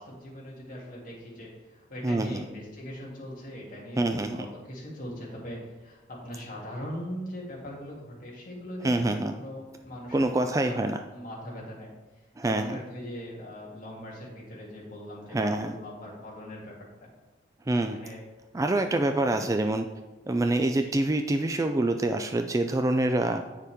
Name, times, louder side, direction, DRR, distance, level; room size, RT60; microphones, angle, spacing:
voice 1, 0.0-10.8 11.1-17.1 17.7-18.2 18.8-18.9 19.3-19.4 20.7-20.9, equal, 45° left, -4 dB, 2.7 m, -41 dB
voice 2, 2.0-2.4 4.0-4.4 8.8-9.3 10.1-11.0 12.4-12.8 15.3-15.7 17.7-18.0 18.5-19.9 20.3-23.4, right 2 dB, 15° right, 6 dB, 0.3 m, -26 dB
9.1 x 6.7 x 3.6 m, 1.2 s
head